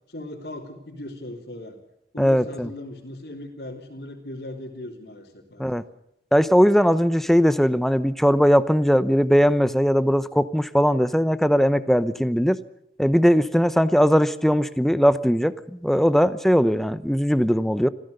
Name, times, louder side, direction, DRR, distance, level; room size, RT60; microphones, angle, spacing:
voice 1, 0.1-1.8 2.1-5.8, left 1 dB, 70° left, -4 dB, 3.3 m, -38 dB
voice 2, 2.2-2.7 5.6-5.8 6.3-12.6 13.0-17.9, equal, ahead, 13 dB, 0.8 m, -19 dB
26.0 x 16.0 x 6.7 m, 0.80 s
head